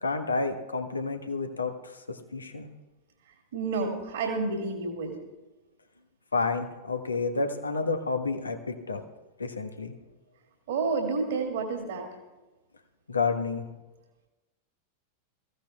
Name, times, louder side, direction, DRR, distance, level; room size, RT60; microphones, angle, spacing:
voice 1, 0.0-2.7 6.3-8.6 8.9-9.0 9.4-9.9 13.1-13.7, left 4 dB, 75° left, 7 dB, 1.1 m, -30 dB
voice 2, 3.5-5.2 10.7-12.1, right 4 dB, 55° right, 2 dB, 2.1 m, -29 dB
22.5 x 15.0 x 2.3 m, 1.1 s
figure-of-eight pair, 90°, 0 cm